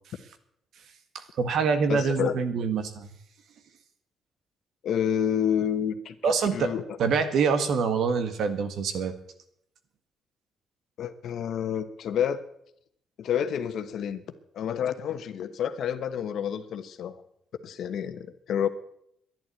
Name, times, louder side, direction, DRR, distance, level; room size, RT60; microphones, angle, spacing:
voice 1, 1.4-3.1 6.2-6.7 7.0-9.1, right 5 dB, 70° right, 9 dB, 1.7 m, -25 dB
voice 2, 1.9-2.3 4.8-7.0 11.0-12.4 13.2-14.2 14.5-17.1 17.6-18.7, left 9 dB, 70° left, 10 dB, 1.2 m, -29 dB
11.0 x 11.0 x 8.3 m, 0.72 s
cardioid pair, 90°, 0 cm